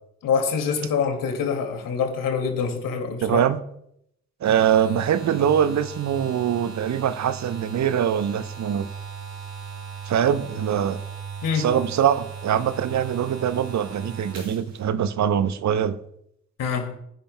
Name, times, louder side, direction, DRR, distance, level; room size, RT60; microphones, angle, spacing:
voice 1, 0.2-3.4 11.4-11.7 16.6-16.9, left 6 dB, 65° left, 2.4 m, -25 dB
voice 2, 3.2-3.6 4.4-8.9 10.1-11.0 11.5-16.0, right 9 dB, 50° right, 0.8 m, -23 dB
sound 1, 4.4-14.9, right 6 dB, 70° right, 4.4 m, -38 dB
20.5 x 10.0 x 2.2 m
hypercardioid pair, 45°, 35 cm